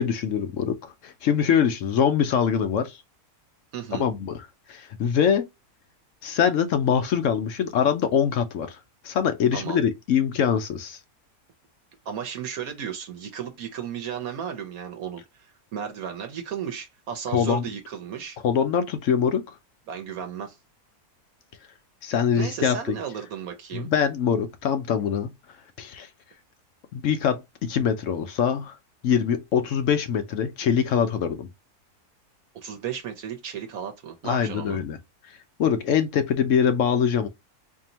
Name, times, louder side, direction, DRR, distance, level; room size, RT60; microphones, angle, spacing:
voice 1, 0.0-3.0 4.0-4.4 4.7-5.4 6.2-8.8 9.0-11.0 17.3-17.6 18.4-19.5 22.0-23.0 23.7-25.3 25.8-26.1 26.9-28.7 29.0-31.5 34.2-35.0 35.6-37.3, left 7 dB, 65° left, 0.9 m, -23 dB
voice 2, 3.7-4.1 9.5-9.8 12.0-18.4 19.9-20.6 22.4-23.9 32.5-34.8, right 8 dB, 70° right, 1.1 m, -34 dB
4.6 x 2.7 x 2.8 m
omnidirectional pair, 1.6 m